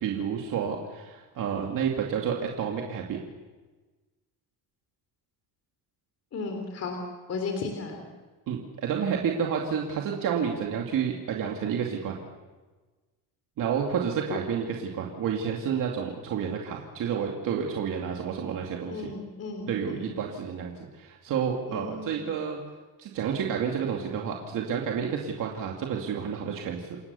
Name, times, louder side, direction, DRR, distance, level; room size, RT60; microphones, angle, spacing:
voice 1, 0.0-3.2 8.5-12.2 13.6-19.1 19.7-22.6 23.0-27.0, right 7 dB, 55° right, 0 dB, 2.5 m, -30 dB
voice 2, 6.3-7.0 7.3-8.0 14.3-14.4 18.9-20.1 21.7-22.2, left 4 dB, 40° left, 4 dB, 3.5 m, -35 dB
29.0 x 18.0 x 7.0 m, 1.3 s
cardioid pair, 145°, 39 cm